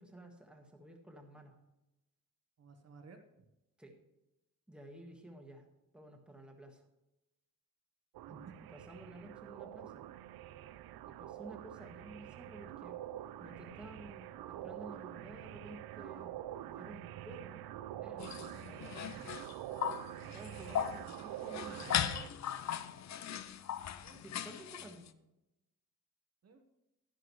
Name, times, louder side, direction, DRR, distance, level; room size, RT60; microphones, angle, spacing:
voice 1, 0.0-1.6 3.8-3.9 4.7-5.6 5.9-6.8 8.7-10.1 11.0-13.0 13.4-16.3 16.7-17.6 17.9-19.0 20.2-22.1 24.1-25.1, right 1 dB, 5° right, 1 dB, 1.5 m, -53 dB
voice 2, 2.6-3.5 8.3-8.6 20.2-20.4 24.0-24.2 24.7-24.9 26.4-26.6, right 4 dB, 45° right, 5 dB, 1.1 m, -56 dB
sound 1, 8.1-22.3, right 13 dB, 85° right, 0.5 m, -46 dB
sound 2, 18.2-25.1, left 9 dB, 50° left, 0.6 m, -38 dB
11.5 x 11.0 x 3.2 m, 0.93 s
wide cardioid pair, 165°, 35 cm